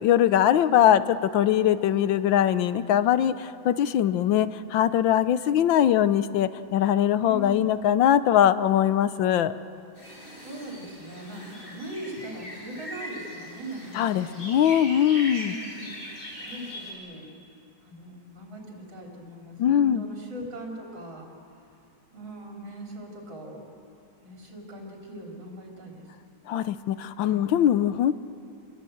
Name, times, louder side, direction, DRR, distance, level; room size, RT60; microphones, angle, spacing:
voice 1, 0.0-9.5 13.9-15.5 19.6-20.0 26.5-28.1, left 10 dB, 75° left, 13 dB, 1.5 m, -22 dB
voice 2, 0.6-1.0 7.2-7.8 10.4-14.4 15.4-15.9 16.4-17.3 17.8-21.3 22.1-23.7 24.2-26.0 27.2-27.4, right 1 dB, 75° right, -1 dB, 4.2 m, -40 dB
sound 1, 10.0-16.9, equal, 25° left, 6.6 m, -40 dB
28.5 x 22.0 x 7.8 m, 2.6 s
omnidirectional pair, 2.1 m